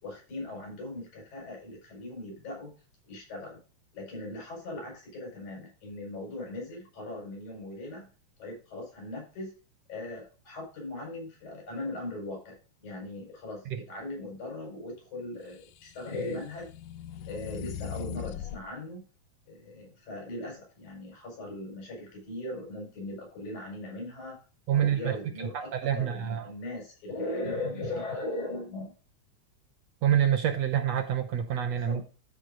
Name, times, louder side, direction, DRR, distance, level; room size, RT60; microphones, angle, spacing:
voice 1, 0.0-2.7 3.1-3.6 3.9-8.1 8.4-9.5 9.9-16.7 17.3-19.0 19.5-24.4 24.7-28.9 31.8-32.0, left 2 dB, 70° left, 0 dB, 6.4 m, -39 dB
sound 1, 15.7-18.6, left 9 dB, 90° left, 2.2 m, -40 dB
voice 2, 24.7-26.5 30.0-32.0, right 9 dB, 70° right, 5 dB, 1.8 m, -27 dB
13.0 x 5.3 x 3.8 m, 0.36 s
omnidirectional pair, 3.5 m